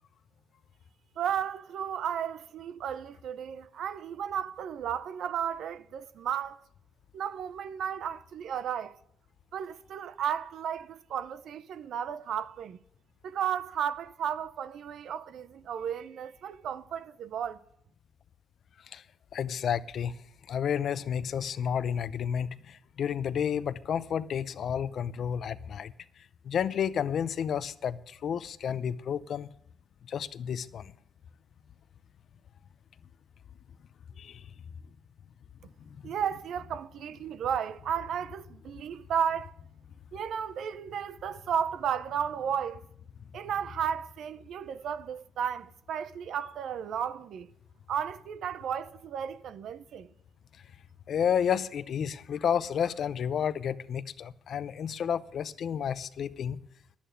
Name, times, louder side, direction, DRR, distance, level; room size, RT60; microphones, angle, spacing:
voice 1, 1.2-6.6 7.1-9.0 9.5-12.8 13.2-17.6 36.0-39.6 40.1-42.8 43.3-47.5 47.9-50.1, right 8 dB, 70° right, 0.6 m, -34 dB
voice 2, 19.3-20.2 20.5-25.9 26.4-29.5 30.1-30.9 34.2-34.4 51.1-56.6, left 8 dB, 60° left, 0.6 m, -31 dB
11.0 x 8.7 x 9.1 m
cardioid pair, 90°, 0 cm